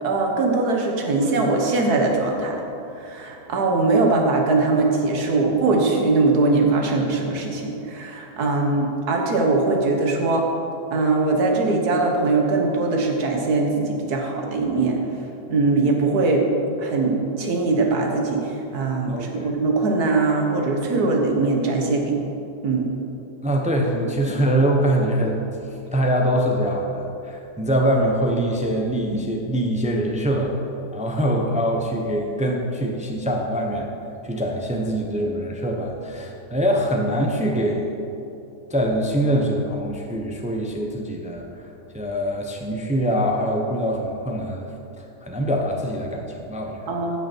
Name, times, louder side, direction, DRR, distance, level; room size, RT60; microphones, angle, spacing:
voice 1, 0.0-2.6 3.0-10.5 10.9-15.0 15.5-16.4 16.8-22.2 22.6-22.9 24.3-24.4 46.9-47.2, right 3 dB, 70° right, 1 dB, 1.8 m, -21 dB
voice 2, 19.1-19.5 23.4-25.4 25.9-30.5 30.9-33.9 34.2-38.0 38.7-41.4 41.9-44.7 45.0-46.8, equal, 5° right, 0 dB, 0.6 m, -23 dB
16.0 x 6.0 x 4.5 m, 2.8 s
omnidirectional pair, 1.7 m